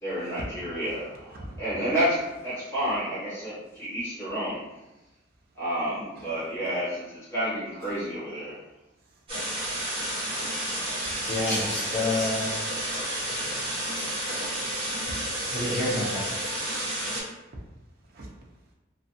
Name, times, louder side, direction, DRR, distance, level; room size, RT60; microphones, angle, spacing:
voice 1, 0.0-4.6 5.5-8.6, equal, 15° left, -12 dB, 1.3 m, -30 dB
voice 2, 1.3-1.6 6.1-6.7 7.8-8.1 9.0-9.2 10.9-11.7 14.7-15.5 17.0-17.2 18.0-18.4, right 1 dB, 50° right, -2 dB, 0.5 m, -45 dB
sound 1, 9.3-17.2, right 1 dB, 25° right, 1.0 m, -31 dB
voice 3, 10.6-12.6 12.9-13.0 13.9-14.3 15.5-16.3, left 2 dB, 40° left, -10 dB, 0.6 m, -30 dB
2.4 x 2.3 x 2.7 m, 1.0 s
head